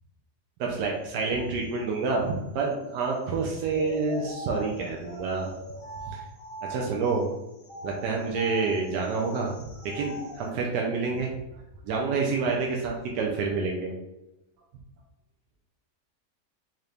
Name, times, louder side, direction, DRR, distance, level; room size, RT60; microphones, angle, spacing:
voice 1, 0.6-5.5 6.1-6.3 6.6-7.3 7.8-9.5 9.8-11.3 11.8-13.9, right 4 dB, 80° right, -1 dB, 1.2 m, -28 dB
sound 1, 3.7-7.1 7.6-10.5, right 1 dB, 40° left, 1.0 m, -41 dB
3.8 x 2.9 x 3.3 m, 0.98 s
omnidirectional pair, 1.8 m